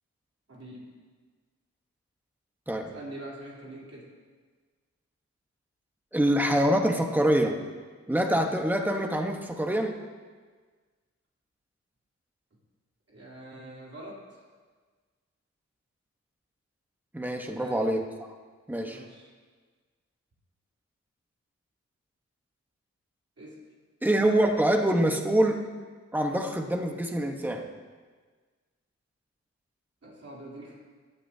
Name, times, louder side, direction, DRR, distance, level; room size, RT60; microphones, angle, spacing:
voice 1, 0.5-0.9 2.9-4.1 13.1-14.4 17.4-17.8 18.8-19.3 23.4-23.6 30.0-30.7, right 1 dB, 55° right, -5 dB, 3.4 m, -44 dB
voice 2, 6.1-7.6 8.1-10.0 17.1-18.0 18.7-19.0 24.0-25.7 26.1-27.7, right 1 dB, 5° right, 3 dB, 1.1 m, -25 dB
17.5 x 12.5 x 2.8 m, 1.5 s
wide cardioid pair, 105°, 29 cm